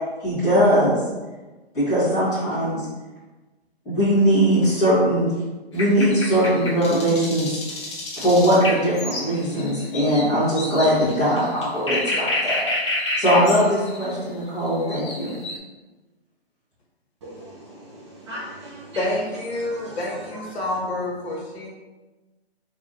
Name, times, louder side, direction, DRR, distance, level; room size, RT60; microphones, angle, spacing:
voice 1, 0.2-1.0 1.7-2.9 3.8-5.3 5.7-7.6 8.2-12.6 13.2-15.3, equal, 10° left, -11 dB, 1.5 m, -20 dB
sound 1, 5.8-14.1 14.7-15.6, left 2 dB, 25° left, 0.4 m, -29 dB
voice 2, 17.2-19.1 19.5-21.4, right 1 dB, 25° right, -5 dB, 0.6 m, -40 dB
voice 3, 18.9-21.7, left 1 dB, 75° left, -3 dB, 1.3 m, -28 dB
3.5 x 3.3 x 2.7 m, 1.2 s
hypercardioid pair, 155°, 32 cm